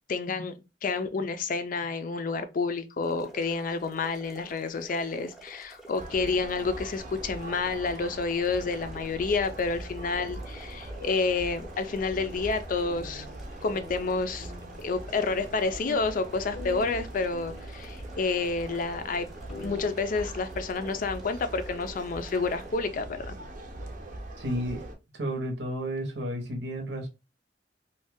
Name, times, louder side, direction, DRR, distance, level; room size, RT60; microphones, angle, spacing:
voice 1, 0.1-13.3 13.6-14.5 14.8-19.3 19.6-23.4, left 4 dB, 50° left, 0.4 m, -29 dB
sound 1, 3.0-22.7, right 2 dB, ahead, 0.6 m, -50 dB
sound 2, 5.9-25.0, right 1 dB, 50° right, 0.6 m, -42 dB
sound 3, 12.1-17.9 18.7-18.8 19.2-19.9, left 2 dB, 90° left, 0.7 m, -45 dB
voice 2, 24.4-27.1, equal, 75° right, 0.8 m, -32 dB
2.6 x 2.2 x 3.4 m
head